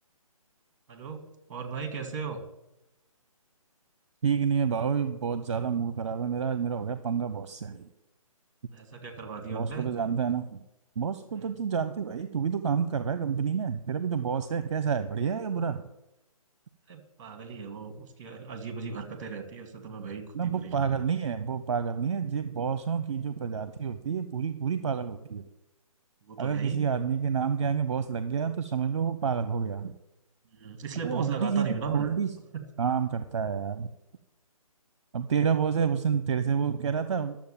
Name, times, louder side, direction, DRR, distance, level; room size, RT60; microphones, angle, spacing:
voice 1, 0.9-1.2 1.5-2.4 8.7-9.9 11.4-11.5 16.9-21.0 26.2-26.9 30.5-32.1 32.5-32.6, right 5 dB, 30° right, 6 dB, 2.3 m, -36 dB
voice 2, 4.2-7.9 9.5-10.6 11.0-15.8 20.3-25.4 26.4-29.9 31.0-32.3 32.8-33.9 35.1-37.4, right 6 dB, 55° right, 11 dB, 0.9 m, -29 dB
11.5 x 7.4 x 9.1 m, 0.89 s
figure-of-eight pair, 150°, 19 cm